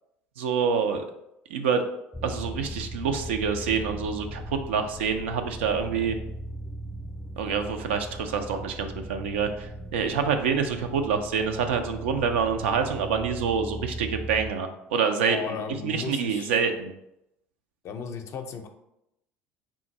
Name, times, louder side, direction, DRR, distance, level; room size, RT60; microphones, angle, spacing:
voice 1, 0.4-1.0 1.5-1.8 2.2-6.2 7.4-15.6 15.8-16.9, right 6 dB, 80° right, 6 dB, 0.4 m, -27 dB
sound 1, 2.1-14.5, right 1 dB, 5° left, 0.4 m, -38 dB
voice 2, 15.3-16.5 17.8-18.7, left 7 dB, 50° left, 6 dB, 0.5 m, -35 dB
3.6 x 2.5 x 4.0 m, 0.85 s
hypercardioid pair, 65°, 6 cm